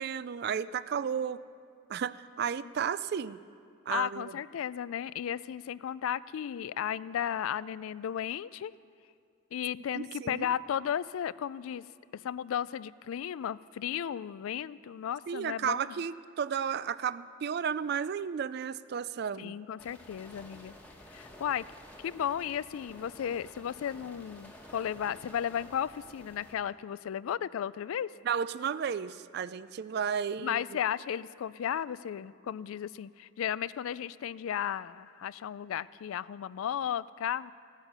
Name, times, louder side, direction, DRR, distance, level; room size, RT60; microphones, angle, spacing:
voice 1, 0.0-1.4 1.9-3.4 3.9-4.3 9.9-10.5 15.3-19.6 28.2-30.8, right 7 dB, 50° right, 17 dB, 0.3 m, -33 dB
voice 2, 3.9-8.7 9.5-11.8 12.1-15.8 19.4-20.7 21.1-21.6 22.0-28.1 30.4-37.5, left 9 dB, 85° left, 18 dB, 0.3 m, -34 dB
sound 1, 19.8-26.5, left 1 dB, 5° left, 1.2 m, -52 dB
16.5 x 9.0 x 6.6 m, 2.3 s
head